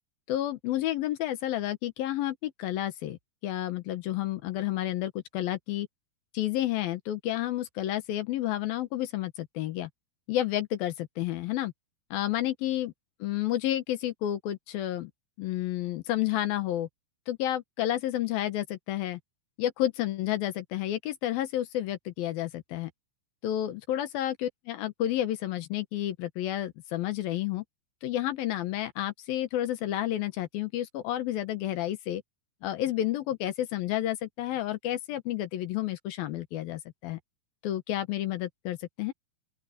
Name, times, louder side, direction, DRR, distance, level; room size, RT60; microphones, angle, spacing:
voice 1, 0.3-5.9 6.3-9.9 10.3-11.7 12.1-12.9 13.2-15.1 15.4-16.9 17.3-19.2 19.6-22.9 23.4-27.6 28.0-32.2 32.6-37.2 37.6-39.1, left 13 dB, 70° left, 2.8 m, -30 dB
open air
omnidirectional pair, 4.5 m